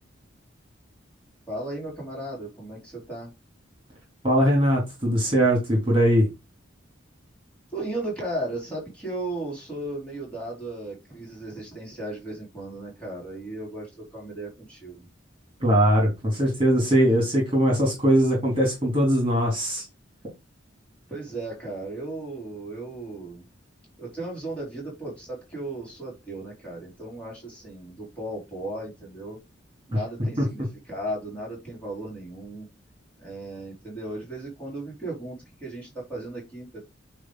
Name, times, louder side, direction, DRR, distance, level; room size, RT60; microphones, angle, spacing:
voice 1, 1.5-3.3 7.7-15.0 16.7-16.8 21.1-23.4 24.0-29.4 29.9-32.7 33.2-36.8, right 1 dB, 5° left, 4.1 m, -35 dB
voice 2, 4.2-6.3 15.6-19.8 30.4-30.5, equal, 25° right, 3.1 m, -21 dB
9.5 x 3.5 x 4.0 m
head